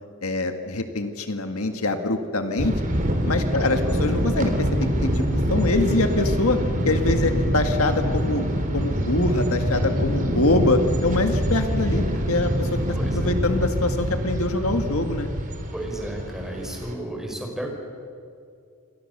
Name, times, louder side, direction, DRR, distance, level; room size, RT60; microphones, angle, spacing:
voice 1, 0.2-2.7 3.3-6.6 6.9-8.4 8.7-12.7 13.1-15.3, left 2 dB, 70° left, 6 dB, 1.9 m, -24 dB
sound 1, 2.6-16.9, equal, 40° right, 3.6 m, -25 dB
voice 2, 3.5-4.0 13.0-13.4 15.7-17.7, right 1 dB, ahead, 1 dB, 5.2 m, -33 dB
29.0 x 24.5 x 6.8 m, 2.4 s
head